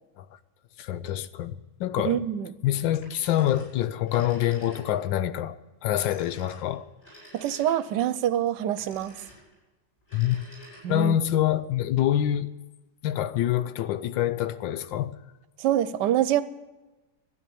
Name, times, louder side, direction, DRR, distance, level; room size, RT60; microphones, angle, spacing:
voice 1, 0.8-2.2 2.6-6.8 10.1-10.4 10.9-12.5 13.0-15.2, left 12 dB, 90° left, 1.4 m, -26 dB
voice 2, 2.0-2.5 7.3-9.1 10.8-11.2 15.6-16.4, right 11 dB, 75° right, 1.3 m, -25 dB
Telephone, 3.0-5.1 5.9-8.1 8.8-9.6 10.0-11.2, equal, 25° left, 6.6 m, -50 dB
12.0 x 9.5 x 8.4 m
omnidirectional pair, 2.0 m